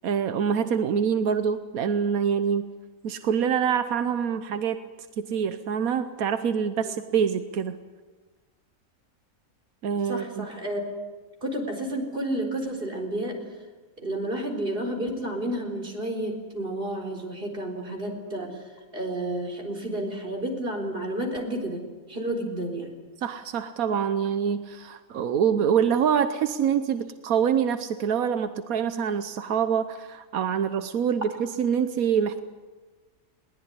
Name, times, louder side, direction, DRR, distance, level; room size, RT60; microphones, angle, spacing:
voice 1, 0.0-2.7 3.0-4.8 5.2-7.8 9.8-10.5 23.2-32.4, right 7 dB, 90° right, 10 dB, 1.4 m, -25 dB
voice 2, 10.1-10.8 11.4-13.3 14.0-18.6 18.9-22.9, right 1 dB, 40° right, 1 dB, 4.3 m, -31 dB
21.0 x 19.0 x 9.7 m, 1.3 s
omnidirectional pair, 1.4 m